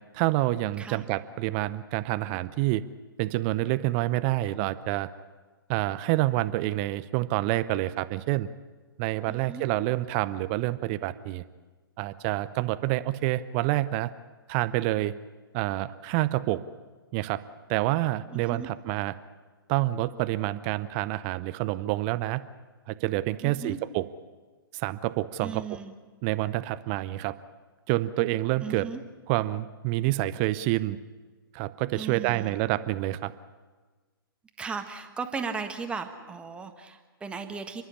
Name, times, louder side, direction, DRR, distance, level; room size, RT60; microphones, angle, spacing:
voice 1, 0.1-2.8 3.2-5.1 5.7-8.5 9.0-11.4 12.0-14.1 14.5-15.1 15.5-16.6 17.1-17.4 17.7-19.1 19.7-22.4 22.9-24.0 24.7-25.6 26.2-27.4 27.9-28.9 29.3-31.0 31.5-33.3, right 17 dB, 25° right, 14 dB, 0.7 m, -27 dB
voice 2, 9.3-9.6 18.3-18.7 23.4-23.8 25.4-25.9 28.6-29.0 31.9-32.5 34.6-37.8, right 5 dB, 10° right, 5 dB, 1.5 m, -36 dB
29.5 x 11.5 x 10.0 m, 1.3 s
figure-of-eight pair, 120°, 12 cm